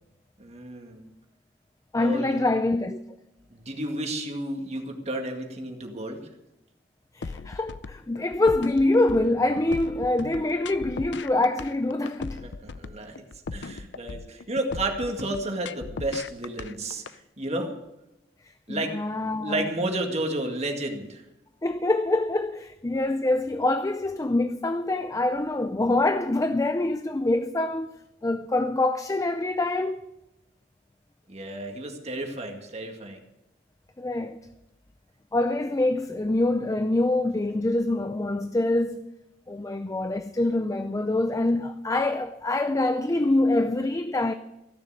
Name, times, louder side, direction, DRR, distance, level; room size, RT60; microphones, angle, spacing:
voice 1, 0.4-1.0 2.0-2.5 3.5-6.2 12.4-13.2 13.5-17.0 17.4-17.7 18.7-18.9 19.4-21.2 31.3-33.2, right 1 dB, 40° right, 2.0 m, -31 dB
voice 2, 1.9-3.0 7.1-12.4 18.7-19.7 21.6-27.9 28.2-30.0 34.0-34.4 35.3-39.1 39.5-44.3, left 2 dB, 20° left, 0.5 m, -25 dB
sound 1, 7.2-17.1, left 4 dB, 75° left, 0.6 m, -38 dB
15.5 x 6.9 x 9.3 m
head